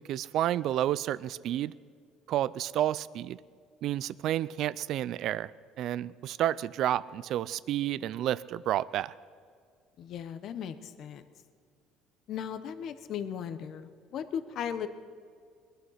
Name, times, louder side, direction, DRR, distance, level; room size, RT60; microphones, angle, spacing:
voice 1, 0.1-1.7 2.3-3.4 3.8-5.5 5.8-9.1, right 12 dB, 60° right, 19 dB, 0.4 m, -30 dB
voice 2, 10.0-11.2 12.3-14.9, left 8 dB, 55° left, 11 dB, 0.9 m, -37 dB
21.0 x 11.5 x 5.7 m, 2.1 s
cardioid pair, 105°, 0 cm